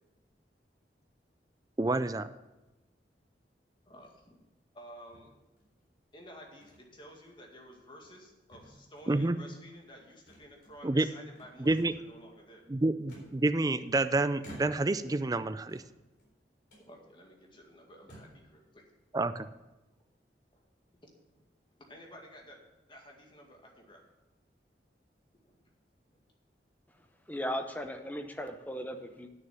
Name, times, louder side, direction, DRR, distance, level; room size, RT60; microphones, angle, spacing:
voice 1, 1.8-2.3 9.1-9.4 10.8-11.1 11.6-11.9 12.7-15.8 19.1-19.5, right 2 dB, 20° right, 12 dB, 0.4 m, -28 dB
sound 1, 3.9-4.3 5.1-5.9 6.6-6.8 7.2-7.4 7.9-8.3 8.5-9.2 10.3-11.0 11.3-12.1 13.1-13.9 14.4-15.1 15.6-16.3 16.7-16.9 17.5-17.6 18.0-18.5, right 1 dB, 65° left, 4.0 m, -53 dB
voice 2, 3.9-4.4 4.7-5.3 6.1-12.6 16.8-18.8 20.5-20.6 21.3-21.4 21.9-22.6 22.9-24.0 25.4-25.6 26.1-26.2, equal, 30° left, 0 dB, 2.0 m, -52 dB
voice 3, 27.3-29.3, equal, 10° left, 6 dB, 0.8 m, -37 dB
10.0 x 6.5 x 7.1 m, 1.0 s
head